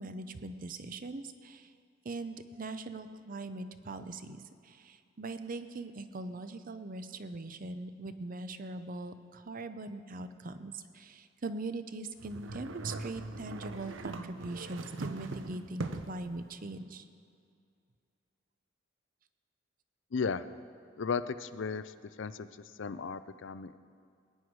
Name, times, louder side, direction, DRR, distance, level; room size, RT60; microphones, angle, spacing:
voice 1, 0.0-1.7 2.0-17.0, right 2 dB, 45° right, 10 dB, 0.6 m, -41 dB
sound 1, 12.2-16.3, right 2 dB, 85° right, 0.8 m, -40 dB
voice 2, 20.1-20.4 21.0-22.5 22.8-23.8, left 5 dB, 70° left, 14 dB, 0.5 m, -35 dB
19.5 x 9.7 x 4.7 m, 2.4 s
head